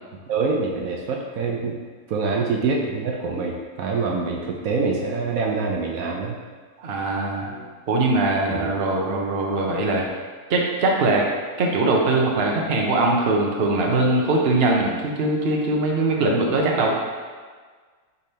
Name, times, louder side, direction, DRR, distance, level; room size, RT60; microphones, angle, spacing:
voice 1, 0.3-1.8 2.1-6.4 8.5-8.7, right 4 dB, 70° right, -1 dB, 1.1 m, -25 dB
voice 2, 6.8-7.6 7.9-10.1 10.5-11.2 11.6-16.9, right 2 dB, 50° right, -1 dB, 0.9 m, -21 dB
9.4 x 3.5 x 2.8 m, 1.5 s
omnidirectional pair, 1.6 m